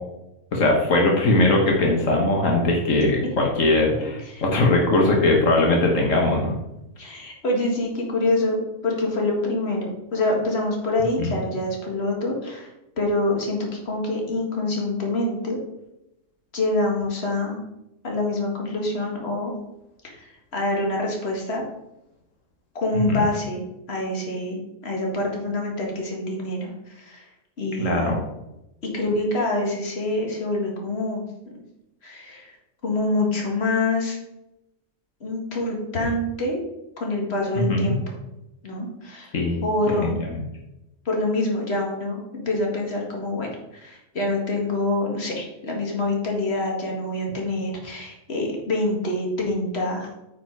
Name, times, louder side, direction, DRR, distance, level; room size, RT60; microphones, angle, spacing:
voice 1, 0.5-6.5 11.2-11.3 23.1-23.3 27.8-28.2 37.6-37.9 39.3-39.6 40.0-40.1, left 2 dB, 85° left, 0 dB, 1.7 m, -20 dB
voice 2, 7.0-8.6 8.8-12.7 13.0-15.6 16.5-17.6 18.0-19.5 20.0-21.6 22.8-23.6 23.9-27.3 27.6-28.1 28.9-31.6 32.0-32.6 32.8-34.2 35.2-36.6 37.0-38.0 38.6-39.3 39.6-40.2 41.1-50.1, left 2 dB, 55° left, 0 dB, 2.1 m, -26 dB
9.0 x 5.2 x 4.7 m, 0.90 s
omnidirectional pair, 1.3 m